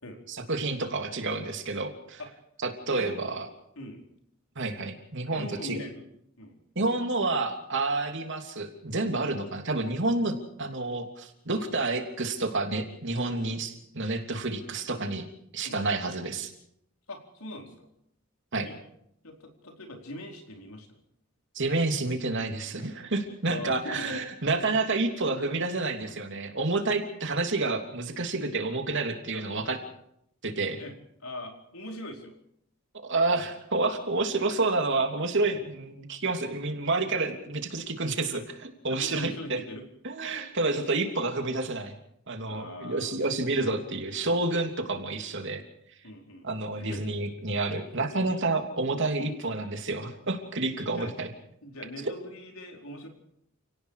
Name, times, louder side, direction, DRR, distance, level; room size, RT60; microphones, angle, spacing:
voice 1, 0.3-2.2 2.6-3.5 4.5-5.8 6.7-16.5 18.5-18.7 21.5-29.8 30.4-30.8 33.0-39.6 40.0-41.9 42.3-45.6 46.4-51.3, right 3 dB, 60° right, 4 dB, 3.0 m, -29 dB
voice 2, 2.9-3.2 3.8-4.0 5.2-6.1 6.4-6.6 11.6-11.7 13.2-13.5 14.3-14.4 15.6-15.8 17.1-17.9 18.6-18.8 19.2-21.0 23.5-24.2 24.6-25.1 29.3-29.8 30.8-30.9 31.2-32.4 35.5-35.7 38.9-39.8 42.5-43.2 46.0-46.5 46.7-47.1 47.7-48.4 49.1-49.6 50.8-51.2 51.6-53.1, left 1 dB, 85° left, 2 dB, 4.6 m, -42 dB
30.0 x 18.0 x 5.0 m, 0.73 s
head